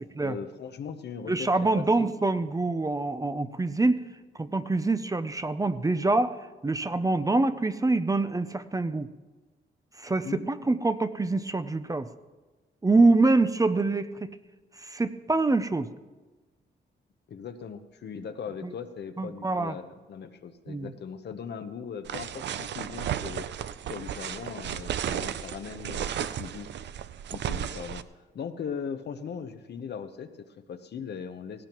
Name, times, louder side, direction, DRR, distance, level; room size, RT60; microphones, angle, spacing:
voice 1, 0.0-1.5 1.7-2.1 10.2-10.5 17.3-23.5 23.9-26.7 27.3-31.7, left 6 dB, 60° left, 9 dB, 0.9 m, -39 dB
voice 2, 1.3-4.0 4.4-6.4 6.6-9.1 10.0-12.1 12.8-14.3 14.8-15.9 18.6-18.7 19.2-19.8 20.7-20.9, right 3 dB, 20° right, 11 dB, 0.5 m, -25 dB
sound 1, 22.1-28.0, right 10 dB, 70° right, 0.5 m, -34 dB
17.5 x 16.5 x 3.0 m, 1.2 s
cardioid pair, 85°, 19 cm